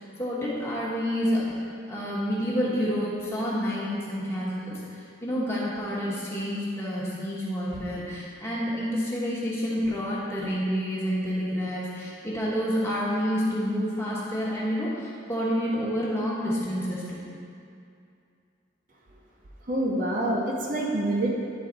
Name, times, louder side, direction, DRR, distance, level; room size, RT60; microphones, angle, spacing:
voice 1, 0.0-1.5 1.9-17.3, equal, 15° left, -7 dB, 1.2 m, -29 dB
voice 2, 19.7-21.3, right 1 dB, 45° right, -2 dB, 0.7 m, -26 dB
9.9 x 4.0 x 3.9 m, 2.5 s
head